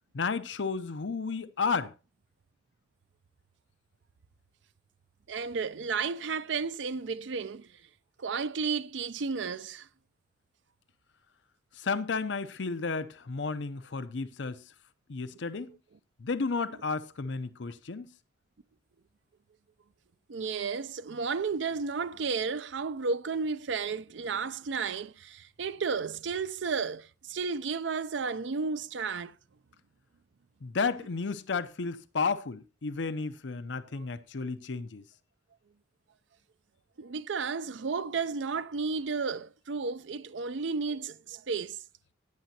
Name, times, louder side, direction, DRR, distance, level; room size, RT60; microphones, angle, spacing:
voice 1, 0.1-1.9 11.7-14.6 15.1-15.7 16.2-18.1 30.6-35.0, left 4 dB, 70° left, 0.6 m, -32 dB
voice 2, 5.3-7.7 8.2-9.9 20.3-29.3 37.0-41.8, right 5 dB, 75° right, 0.5 m, -33 dB
16.5 x 9.1 x 2.8 m
head